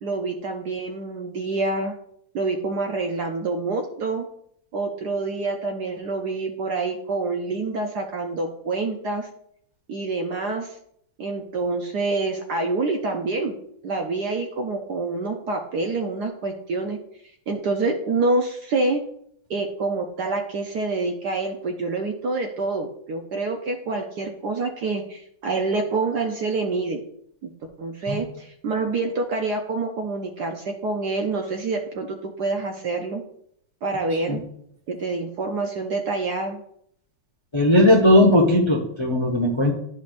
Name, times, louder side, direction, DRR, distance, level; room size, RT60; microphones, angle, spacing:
voice 1, 0.0-1.9 2.3-4.2 4.7-9.3 9.9-10.8 11.2-17.0 17.5-19.0 19.5-27.0 27.4-27.5 27.8-33.2 33.8-34.4 34.9-36.6, right 3 dB, 65° right, 3 dB, 1.1 m, -27 dB
voice 2, 37.5-39.7, left 1 dB, 30° left, 0 dB, 0.5 m, -17 dB
11.5 x 5.3 x 2.5 m, 0.69 s
omnidirectional pair, 2.4 m